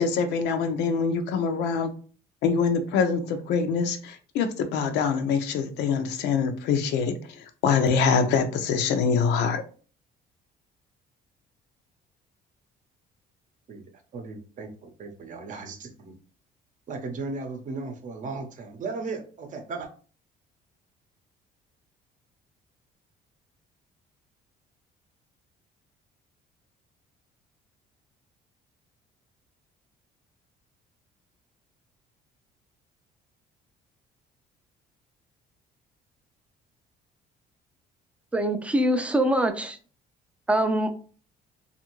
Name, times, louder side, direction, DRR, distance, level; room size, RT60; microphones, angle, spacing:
voice 1, 0.0-1.9 2.4-9.6, left 5 dB, 85° left, 0.5 m, -24 dB
voice 2, 14.1-16.1 16.9-19.9, right 3 dB, 50° right, 0.7 m, -36 dB
voice 3, 38.3-39.8 40.5-40.9, right 1 dB, 5° right, 0.4 m, -23 dB
2.6 x 2.5 x 2.9 m
cardioid pair, 110°, 17 cm